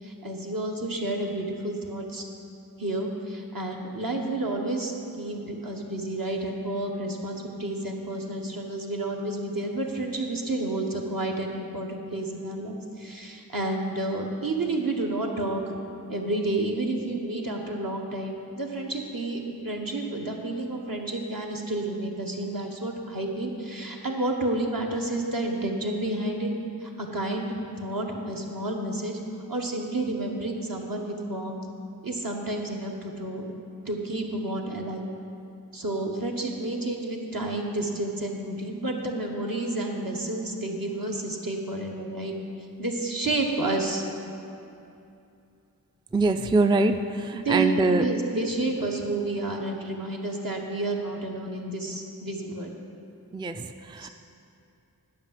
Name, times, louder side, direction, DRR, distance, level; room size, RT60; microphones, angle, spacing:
voice 1, 0.0-2.3 2.8-15.7 16.1-26.5 26.8-29.2 29.5-31.6 32.0-33.6 33.8-35.1 35.7-42.3 42.8-44.0 47.3-52.7 54.0-54.1, right 2 dB, 65° right, 0 dB, 1.2 m, -30 dB
voice 2, 46.1-48.0 53.3-54.1, right 2 dB, 15° right, 8 dB, 0.3 m, -24 dB
10.5 x 5.7 x 7.6 m, 2.7 s
wide cardioid pair, 40°, 37 cm